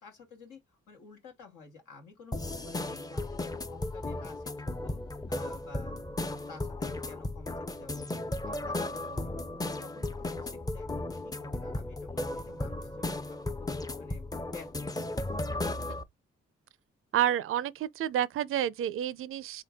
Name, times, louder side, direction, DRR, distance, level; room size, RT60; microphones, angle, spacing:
voice 1, 0.0-8.1 8.4-9.4 9.7-13.7 14.0-14.9, left 4 dB, 85° left, 1.2 m, -51 dB
sound 1, 2.3-16.0, left 2 dB, 15° left, 0.5 m, -35 dB
voice 2, 17.1-19.6, right 11 dB, 45° right, 0.4 m, -29 dB
3.8 x 2.5 x 3.4 m
hypercardioid pair, 40°, 30 cm